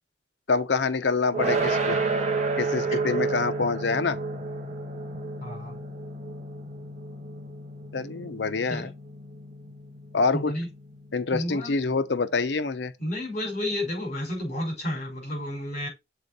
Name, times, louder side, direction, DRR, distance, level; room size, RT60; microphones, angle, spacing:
voice 1, 0.5-2.0 2.6-4.2 7.9-8.9 10.1-10.5 11.1-12.9, left 4 dB, 80° left, 0.7 m, -26 dB
sound 1, 1.3-12.3, right 3 dB, 40° right, 1.6 m, -31 dB
voice 2, 5.4-5.8 8.7-8.9 10.3-10.7 11.3-11.7 13.0-15.9, left 1 dB, 40° left, 5.2 m, -31 dB
6.9 x 4.3 x 4.1 m
head